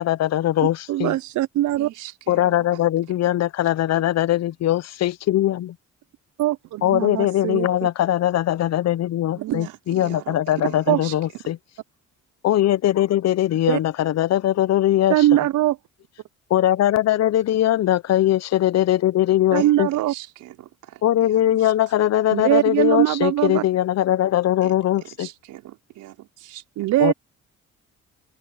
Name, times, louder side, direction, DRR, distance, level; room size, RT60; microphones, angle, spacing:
voice 1, 0.0-1.1 2.3-5.8 6.8-11.6 12.4-15.1 16.5-19.9 21.0-25.3 27.0-27.1, left 13 dB, 60° left, 0.6 m, -21 dB
voice 2, 0.9-1.9 6.4-7.7 10.9-11.0 13.7-13.8 15.1-15.8 19.5-20.1 22.3-23.6 26.8-27.1, right 14 dB, 75° right, 0.6 m, -21 dB
voice 3, 1.8-3.2 4.0-4.1 9.3-11.2 19.5-21.7 24.6-26.9, right 15 dB, 90° right, 4.6 m, -41 dB
open air
cardioid pair, 90°, 30 cm